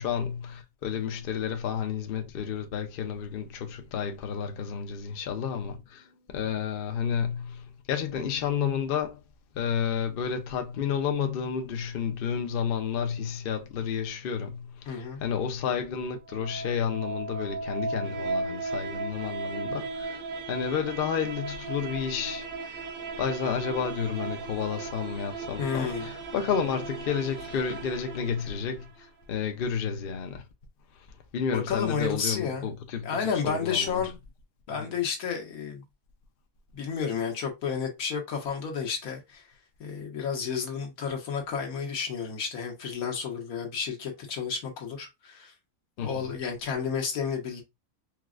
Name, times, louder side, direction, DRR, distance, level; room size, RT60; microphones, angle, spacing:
voice 1, 0.0-9.2 9.5-20.2 20.5-22.8 23.2-30.4 31.3-34.0 34.7-34.9 46.0-46.3, left 7 dB, 60° left, 0.6 m, -31 dB
voice 2, 14.9-15.2 25.6-26.1 31.5-32.7 33.0-34.2 34.7-35.8 36.7-39.4 39.8-45.5 46.0-47.6, left 6 dB, 80° left, 1.4 m, -31 dB
sound 1, 16.1-29.1, right 3 dB, 90° right, 1.3 m, -36 dB
4.5 x 2.0 x 2.4 m
omnidirectional pair, 1.5 m